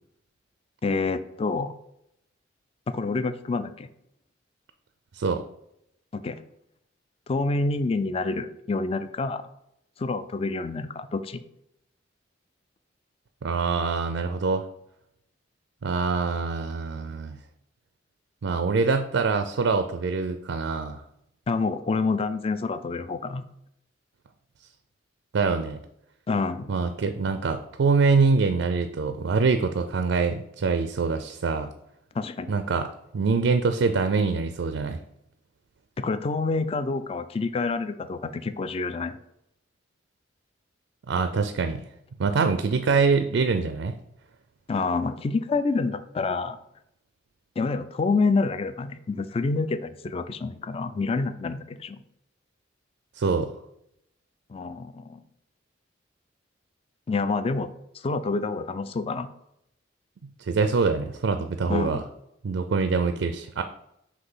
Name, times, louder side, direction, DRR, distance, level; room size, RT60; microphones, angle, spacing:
voice 1, 0.8-1.7 2.9-3.9 6.1-6.4 7.3-9.4 10.0-11.4 21.5-23.4 26.3-26.7 27.3-27.4 32.1-32.6 36.0-39.2 44.7-46.6 47.6-52.0 54.5-55.2 57.1-59.3 61.7-62.0, left 3 dB, 30° left, 12 dB, 0.3 m, -27 dB
voice 2, 13.4-14.7 15.8-17.4 18.4-21.0 25.3-25.8 26.7-31.7 32.5-32.9 33.1-35.0 41.1-41.8 42.2-43.9 53.2-53.5 60.4-62.0 62.4-63.6, right 4 dB, 70° right, 9 dB, 0.4 m, -24 dB
5.9 x 3.0 x 5.5 m, 0.79 s
head